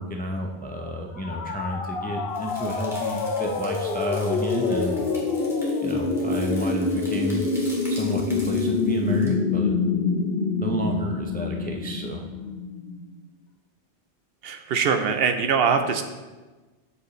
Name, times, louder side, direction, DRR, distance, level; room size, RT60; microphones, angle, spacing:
voice 1, 0.0-5.0 5.8-7.4 7.9-9.7 10.6-12.3, equal, 15° left, 1 dB, 0.4 m, -30 dB
sound 1, 1.2-13.0, left 4 dB, 65° left, 0.8 m, -26 dB
sound 2, 2.3-9.3, equal, ahead, 1.8 m, -45 dB
voice 2, 14.4-16.0, right 6 dB, 65° right, 7 dB, 0.7 m, -22 dB
7.4 x 6.5 x 3.1 m, 1.2 s
omnidirectional pair, 1.1 m